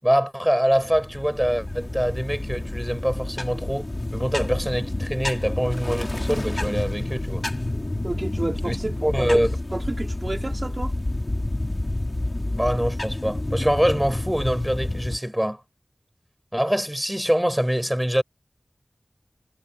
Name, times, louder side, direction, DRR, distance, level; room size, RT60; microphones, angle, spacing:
voice 1, 0.0-7.5 8.6-8.8 9.0-9.5 12.6-15.6 16.5-18.2, equal, 10° right, 6.6 m, -24 dB
sound 1, 0.7-15.2, left 1 dB, 40° left, 4.1 m, -29 dB
voice 2, 8.0-9.4 9.7-10.9, right 2 dB, 45° right, 4.5 m, -30 dB
wide cardioid pair, 55°, 0 cm